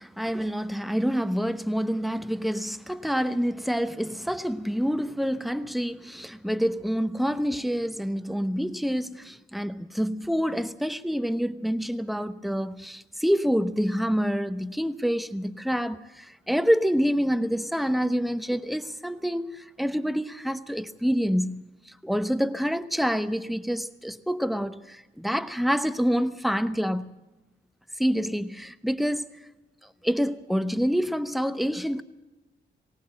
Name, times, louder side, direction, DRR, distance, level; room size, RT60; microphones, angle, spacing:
voice 1, 0.0-27.1 28.0-29.3 30.0-32.0, equal, ahead, 1.0 m, -27 dB
19.5 x 18.0 x 7.7 m
cardioid pair, 70°, 20 cm